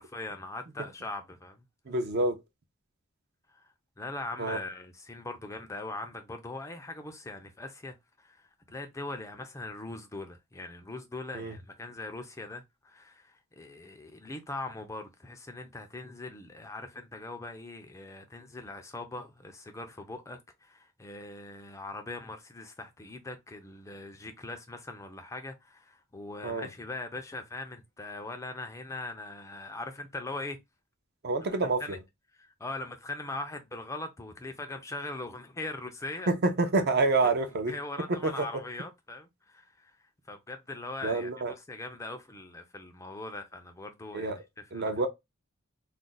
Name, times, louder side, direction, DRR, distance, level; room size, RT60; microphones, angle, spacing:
voice 1, 0.0-1.6 3.5-3.6 4.0-30.6 31.8-32.0 32.4-36.3 37.2-37.3 37.7-40.0 40.3-44.3 44.7-44.9, left 2 dB, 15° left, 0.4 m, -41 dB
voice 2, 1.9-2.4 4.4-4.6 11.3-11.5 26.4-26.7 31.2-32.0 36.3-37.8 38.1-38.5 41.0-41.5 44.1-44.4 44.7-45.1, right 3 dB, 50° right, 0.5 m, -27 dB
2.4 x 2.1 x 3.8 m
head